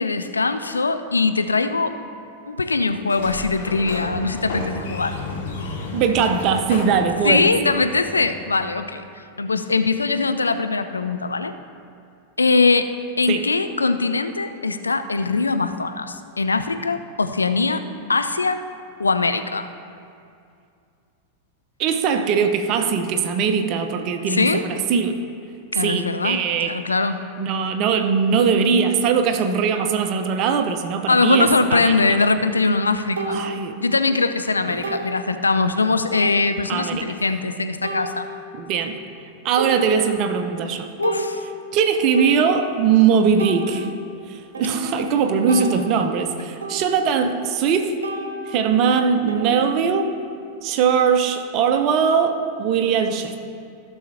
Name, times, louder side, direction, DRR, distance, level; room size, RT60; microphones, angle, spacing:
voice 1, 0.0-2.0 2.5-5.2 7.2-9.0 9.4-11.5 12.4-17.8 18.1-18.6 19.0-19.7 24.3-24.6 25.7-27.3 31.1-33.5 33.8-38.3 41.0-41.4, left 3 dB, 75° left, 9 dB, 0.4 m, -21 dB
Sliding door, 3.0-8.7, left 2 dB, 60° left, 1.3 m, -32 dB
voice 2, 5.9-7.5 13.3-13.5 21.8-25.2 25.8-26.7 27.3-32.2 33.3-33.8 34.7-34.8 36.7-37.2 38.6-39.0 39.4-40.9 41.7-43.9 44.3-48.0 48.5-50.1 50.6-53.4, right 6 dB, 40° right, 7 dB, 0.7 m, -21 dB
sound 1, 31.3-31.5 33.2-33.6 34.1-34.2 34.8-35.1 36.1-36.8 37.8-38.7 39.1-39.3 39.6-40.4 40.8-42.9 43.4-47.7 48.0-50.3, right 2 dB, 70° right, 1.0 m, -32 dB
15.0 x 6.3 x 2.8 m, 2.4 s
figure-of-eight pair, 90°, 0 cm